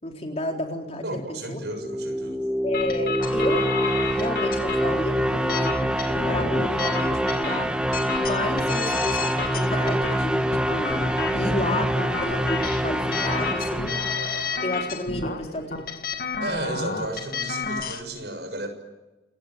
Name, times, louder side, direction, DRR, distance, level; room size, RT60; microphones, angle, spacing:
voice 1, 0.0-1.6 2.6-3.7 4.1-5.8 6.3-7.7 8.2-14.0 14.6-15.9, left 1 dB, 35° left, 2 dB, 4.0 m, -31 dB
voice 2, 1.0-2.4 16.4-18.7, right 1 dB, 70° right, 6 dB, 6.7 m, -33 dB
sound 1, 1.6-14.8, equal, 5° right, 1.4 m, -25 dB
sound 2, 2.7-18.0, left 4 dB, 50° left, 2.0 m, -31 dB
29.0 x 20.5 x 9.0 m, 1.1 s
head